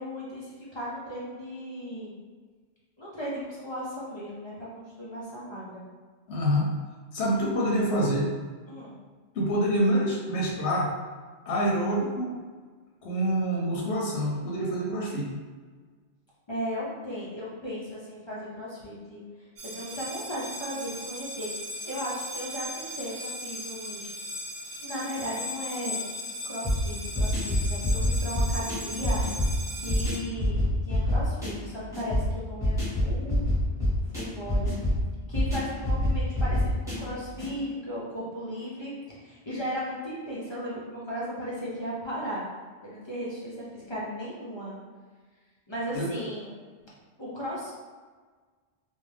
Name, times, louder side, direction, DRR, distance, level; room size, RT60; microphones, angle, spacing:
voice 1, 0.0-2.2 3.0-5.8 8.7-9.0 16.5-21.5 21.8-24.1 24.8-29.2 29.7-33.5 34.0-34.8 35.3-38.9 39.2-42.4 42.8-44.8 45.7-46.6 47.2-47.7, equal, 40° left, -7 dB, 0.4 m, -36 dB
voice 2, 6.3-6.7 7.1-8.3 9.3-10.9 11.5-12.3 13.0-15.4 45.9-46.2, equal, 90° left, -3 dB, 0.9 m, -26 dB
sound 1, 19.6-30.2, left 1 dB, 80° right, 0.9 m, -37 dB
sound 2, 26.6-37.5, left 1 dB, 5° right, 1.1 m, -27 dB
2.5 x 2.1 x 3.1 m, 1.5 s
omnidirectional pair, 1.1 m